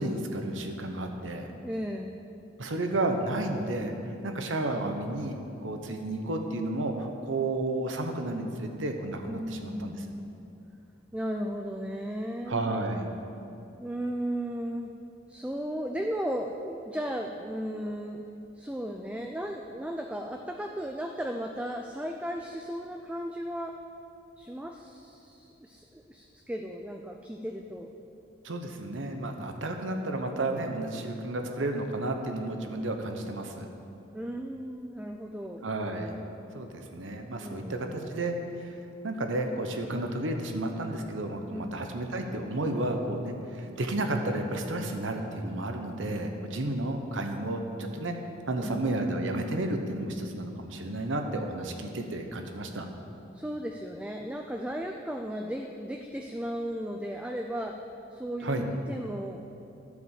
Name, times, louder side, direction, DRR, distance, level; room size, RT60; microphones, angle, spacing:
voice 1, 0.0-1.5 2.6-3.9 4.2-5.4 5.6-10.0 12.5-13.1 28.4-33.7 35.6-36.1 36.5-38.8 39.0-48.1 48.5-52.9 58.4-58.7, right 2 dB, 80° right, 5 dB, 0.9 m, -32 dB
voice 2, 1.6-2.2 9.3-10.3 11.1-12.7 13.8-14.9 15.3-18.2 18.5-23.8 24.4-27.9 34.1-35.6 37.4-38.1 41.5-41.9 48.6-48.8 53.3-57.8 58.1-59.4, equal, 5° right, 3 dB, 0.3 m, -35 dB
11.5 x 5.1 x 7.3 m, 2.8 s
head